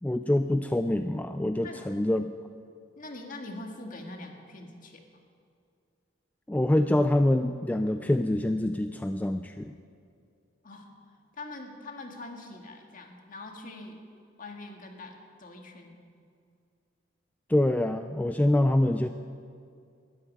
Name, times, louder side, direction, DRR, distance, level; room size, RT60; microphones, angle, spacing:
voice 1, 0.0-2.3 6.5-9.7 17.5-19.1, left 1 dB, 10° left, 7 dB, 0.3 m, -25 dB
voice 2, 2.9-5.0 10.6-11.0 11.3-14.0 14.4-16.0, left 2 dB, 45° left, 2 dB, 1.8 m, -43 dB
13.0 x 9.8 x 9.9 m, 2.3 s
head